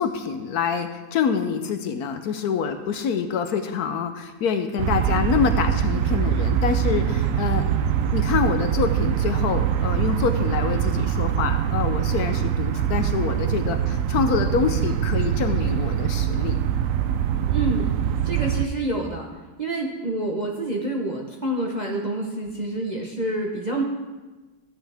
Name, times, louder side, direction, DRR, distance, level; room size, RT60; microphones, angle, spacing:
voice 1, 0.0-7.7 8.1-16.6, left 6 dB, 70° left, 8 dB, 1.0 m, -26 dB
sound 1, 4.8-18.7, right 9 dB, 70° right, 0.8 m, -23 dB
voice 2, 17.5-17.9 18.2-19.3 19.6-23.8, right 2 dB, 35° right, -1 dB, 0.7 m, -27 dB
14.0 x 8.0 x 3.4 m, 1.2 s
omnidirectional pair, 1.8 m